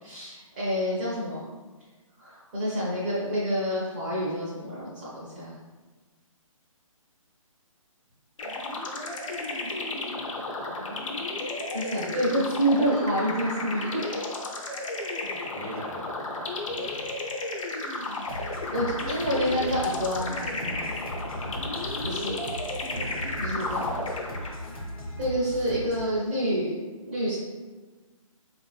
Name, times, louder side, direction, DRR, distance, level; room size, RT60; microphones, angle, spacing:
voice 1, 0.0-1.4 2.2-5.5 11.7-14.3 18.7-20.9 22.1-22.4 23.4-23.9 25.2-26.7 27.1-27.4, equal, 20° right, -8 dB, 0.5 m, -28 dB
sound 1, 8.4-24.8, left 2 dB, 60° left, 0.5 m, -33 dB
voice 2, 15.5-16.2 16.6-17.1 21.3-22.3 22.9-23.3 23.6-24.1, right 1 dB, 80° right, -2 dB, 0.7 m, -42 dB
sound 2, 18.3-26.1, equal, 80° left, 1.0 m, -38 dB
3.7 x 2.5 x 2.3 m, 1.3 s
hypercardioid pair, 160°, 18 cm